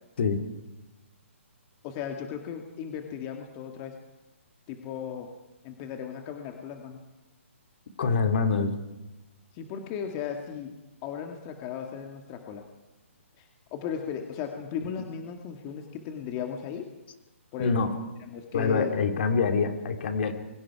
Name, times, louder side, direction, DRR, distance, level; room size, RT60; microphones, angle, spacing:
voice 1, 1.8-3.9 4.7-5.3 5.6-7.0 9.5-10.7 11.0-12.6 13.4-16.9 17.5-17.9 18.2-18.9, left 8 dB, 25° left, 3 dB, 2.1 m, -36 dB
voice 2, 8.0-8.8 17.6-17.9 18.5-20.3, left 5 dB, 55° left, 6 dB, 3.3 m, -25 dB
27.5 x 23.5 x 4.8 m, 1.0 s
hypercardioid pair, 155°, 7 cm